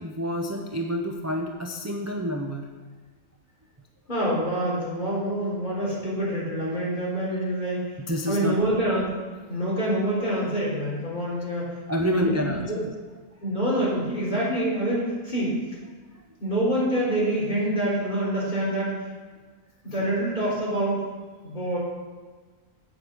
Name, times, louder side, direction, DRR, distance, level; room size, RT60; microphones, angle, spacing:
voice 1, 0.0-2.7 7.4-7.5 8.1-8.6 11.9-12.9, equal, 25° right, 2 dB, 0.4 m, -28 dB
voice 2, 4.1-8.0 8.3-9.0 9.5-12.8 13.4-15.5 16.4-18.9 19.8-21.0 21.4-21.8, right 1 dB, 30° left, -7 dB, 4.1 m, -26 dB
8.8 x 7.5 x 6.3 m, 1.4 s
omnidirectional pair, 1.5 m